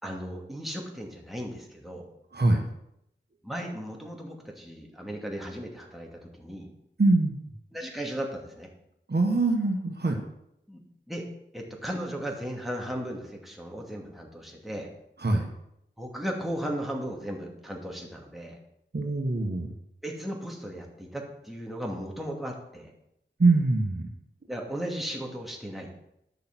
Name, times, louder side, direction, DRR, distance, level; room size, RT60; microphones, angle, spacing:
voice 1, 0.0-2.1 3.4-6.7 7.7-8.7 10.7-11.3 11.5-14.9 16.0-18.6 20.0-22.9 24.5-26.1, equal, ahead, 0 dB, 2.5 m, -36 dB
voice 2, 2.3-2.6 7.0-7.3 9.1-10.2 15.2-15.4 18.9-19.7 23.4-24.1, right 2 dB, 60° right, 2 dB, 1.5 m, -23 dB
10.5 x 6.6 x 6.1 m, 0.79 s
wide cardioid pair, 50°, 20 cm